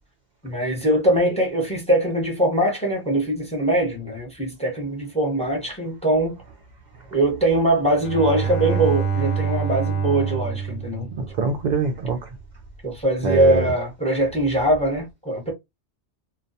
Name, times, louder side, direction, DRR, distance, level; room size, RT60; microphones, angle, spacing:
voice 1, 0.4-6.4 7.1-11.1 12.8-15.5, right 1 dB, 5° left, 0.7 m, -22 dB
Bowed string instrument, 8.0-11.7, right 6 dB, 80° left, 0.9 m, -26 dB
voice 2, 11.1-12.3 13.2-13.7, right 4 dB, 60° right, 0.5 m, -24 dB
2.2 x 2.1 x 2.6 m
omnidirectional pair, 1.2 m